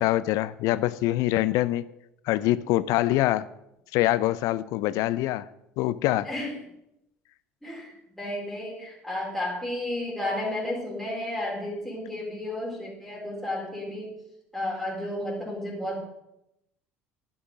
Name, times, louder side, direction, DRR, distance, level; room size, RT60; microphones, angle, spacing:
voice 1, 0.0-1.8 2.3-3.5 3.9-5.5 5.8-6.3, left 15 dB, 60° left, 0.4 m, -24 dB
voice 2, 6.2-6.6 7.6-14.1 14.5-16.0, left 1 dB, 5° left, 3.4 m, -32 dB
11.0 x 6.1 x 6.1 m
figure-of-eight pair, 60°, 7 cm